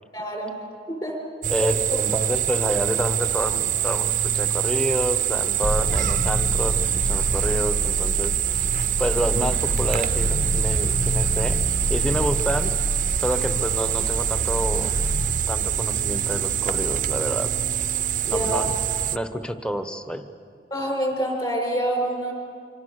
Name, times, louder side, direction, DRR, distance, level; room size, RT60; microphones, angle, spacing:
voice 1, 0.1-0.6 0.9-1.2 18.2-18.6 20.7-22.3, right 1 dB, 25° left, 1 dB, 5.4 m, -26 dB
sound 1, 1.4-19.2, right 11 dB, 45° right, 0.5 m, -25 dB
voice 2, 1.5-8.7 9.0-11.6 11.9-12.9 13.2-15.0 15.5-17.5 18.3-18.7 19.1-20.3, equal, 5° left, 8 dB, 1.0 m, -28 dB
sound 2, 5.6-15.4, equal, 85° left, 2.1 m, -27 dB
sound 3, 15.4-18.9, right 1 dB, 65° left, 1.4 m, -40 dB
26.5 x 25.5 x 6.6 m, 2.3 s
head